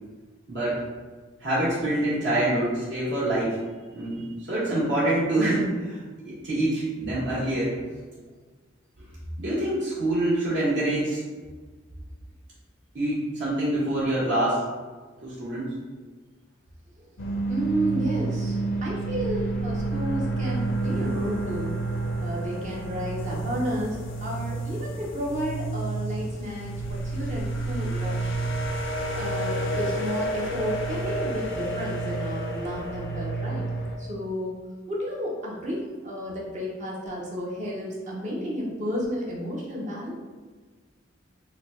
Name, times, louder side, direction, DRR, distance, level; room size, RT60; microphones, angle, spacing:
voice 1, 0.5-0.8 1.4-3.6 3.9-7.7 9.4-11.2 12.9-14.6 15.2-15.7, right 1 dB, 60° right, -9 dB, 1.2 m, -26 dB
sound 1, 17.2-34.0, right 2 dB, 70° left, 0.5 m, -29 dB
voice 2, 17.5-21.7 22.2-28.4 29.1-33.7 34.0-34.6 34.9-40.1, equal, 40° right, -4 dB, 0.7 m, -32 dB
3.2 x 2.2 x 3.6 m, 1.4 s
head